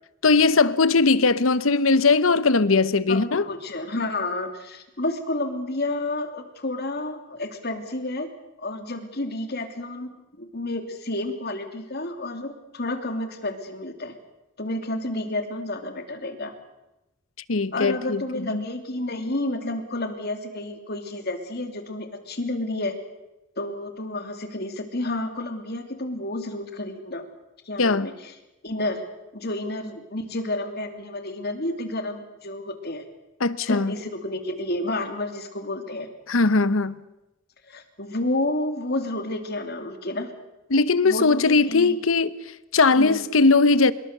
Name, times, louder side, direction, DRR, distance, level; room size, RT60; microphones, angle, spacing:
voice 1, 0.2-3.5 17.5-18.7 27.8-28.1 33.4-33.9 36.3-37.0 40.7-43.9, left 3 dB, 80° left, 1.0 m, -20 dB
voice 2, 3.1-8.3 8.6-10.1 10.4-14.1 14.6-16.5 17.7-22.9 23.6-27.2 27.7-28.1 28.6-29.0 29.3-33.0 33.7-36.1 37.7-40.3 41.0-42.0 42.9-43.2, left 2 dB, 50° left, 2.9 m, -30 dB
25.5 x 22.0 x 6.8 m
head